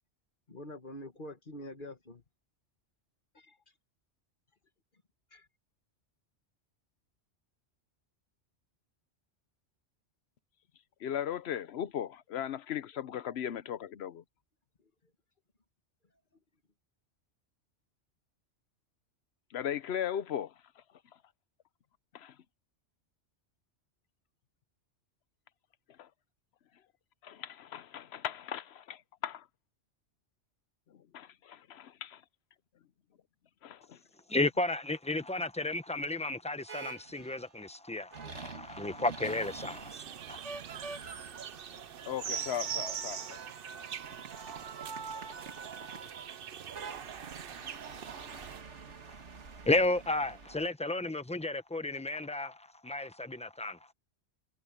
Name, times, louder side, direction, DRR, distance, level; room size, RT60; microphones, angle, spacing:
voice 1, 0.5-2.2 3.3-3.8 5.3-5.5, left 1 dB, 45° left, 2.1 m, -46 dB
voice 2, 11.0-14.2 19.5-20.5 22.1-22.3 26.0-26.1 27.2-29.4 31.1-32.2 33.6-34.0 42.0-43.4, left 9 dB, 65° left, 1.0 m, -37 dB
voice 3, 34.3-40.4 49.6-53.8, left 2 dB, 5° left, 0.7 m, -33 dB
sanic boy, 36.7-37.5 38.1-50.7, right 5 dB, 80° right, 1.9 m, -46 dB
sound 1, 39.2-48.6, right 8 dB, 55° right, 0.9 m, -42 dB
omnidirectional pair, 1.2 m